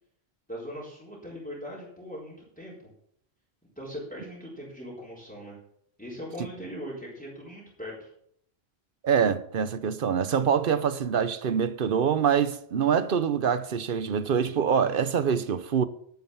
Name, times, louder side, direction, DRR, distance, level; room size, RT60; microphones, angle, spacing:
voice 1, 0.5-2.9 3.8-5.6 6.0-8.1, equal, 10° left, 4.0 m, -40 dB
voice 2, 9.0-15.8, right 7 dB, 60° right, 1.0 m, -25 dB
11.5 x 9.5 x 5.7 m
omnidirectional pair, 1.1 m